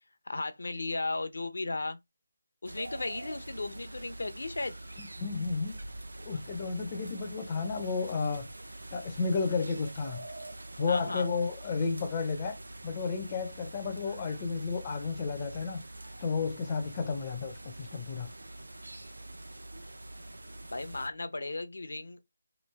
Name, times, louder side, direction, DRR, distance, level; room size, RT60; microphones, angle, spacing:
voice 1, 0.3-2.0 2.6-4.8 10.9-11.3 20.7-22.2, left 2 dB, 70° left, 0.6 m, -35 dB
sound 1, 2.7-21.1, right 1 dB, 85° right, 0.7 m, -45 dB
voice 2, 5.0-5.8 6.2-8.5 8.9-10.3 10.8-12.6 12.8-15.8 16.2-18.3, left 4 dB, 25° left, 0.5 m, -32 dB
3.1 x 2.6 x 3.2 m
figure-of-eight pair, 165°, 0 cm